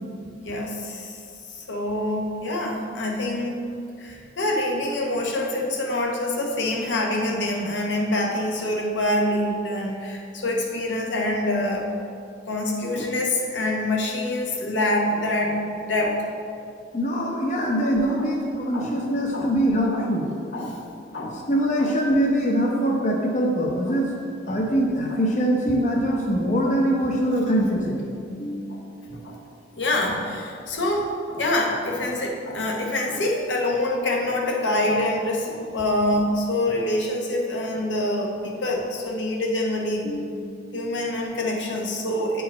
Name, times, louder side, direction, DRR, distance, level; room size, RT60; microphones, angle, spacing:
voice 1, 0.4-1.2 1.5-3.6 4.0-11.9 12.5-16.2 18.2-18.3 18.7-18.9 19.3-19.5 19.9-20.1 20.5-20.8 21.1-21.4 21.8-21.9 24.4-24.7 28.7-28.8 29.1-29.4 29.8-40.1 40.7-42.4, left 1 dB, 85° left, -1 dB, 1.0 m, -26 dB
voice 2, 16.9-20.3 21.5-24.1 24.5-28.8 40.0-40.6, equal, 40° left, -1 dB, 0.7 m, -23 dB
8.5 x 4.7 x 4.1 m, 2.4 s
head